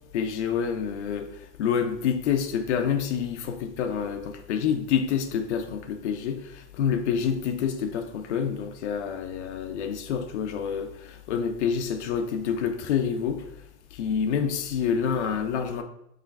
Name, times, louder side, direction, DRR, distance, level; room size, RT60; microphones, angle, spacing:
voice 1, 0.1-1.3 1.6-13.5 13.9-15.8, left 7 dB, 80° left, 7 dB, 0.6 m, -27 dB
5.0 x 3.1 x 3.4 m, 0.80 s
supercardioid pair, 175°, 34 cm